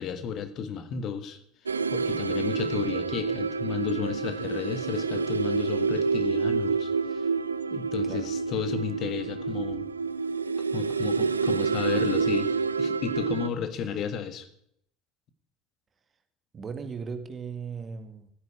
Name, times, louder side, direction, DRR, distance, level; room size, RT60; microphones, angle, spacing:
voice 1, 0.0-1.4 1.9-7.3 7.7-9.9 10.7-14.5, left 7 dB, 45° left, 10 dB, 1.6 m, -33 dB
sound 1, 1.7-13.5, right 5 dB, 80° right, 0.5 m, -28 dB
voice 2, 16.5-18.3, right 5 dB, 30° right, 9 dB, 2.0 m, -37 dB
13.5 x 9.7 x 8.6 m, 0.70 s
figure-of-eight pair, 65°, 0 cm